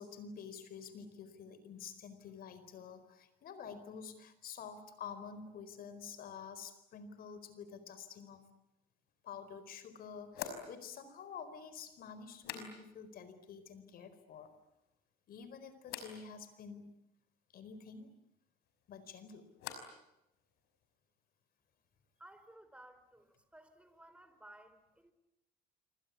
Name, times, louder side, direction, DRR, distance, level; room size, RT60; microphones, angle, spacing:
voice 1, 0.0-8.5 9.2-14.5 15.3-16.9 17.5-18.1 18.9-19.5, left 6 dB, 60° left, 13 dB, 4.5 m, -49 dB
sound 1, 9.1-9.2 10.3-13.2 13.4-14.0 14.4-15.0 15.8-16.2 18.6-20.1 20.3-20.9, left 8 dB, 85° left, 5.4 m, -49 dB
voice 2, 22.2-25.1, right 1 dB, 5° right, 10 dB, 4.1 m, -57 dB
27.5 x 25.0 x 8.5 m, 0.89 s
cardioid pair, 110°, 17 cm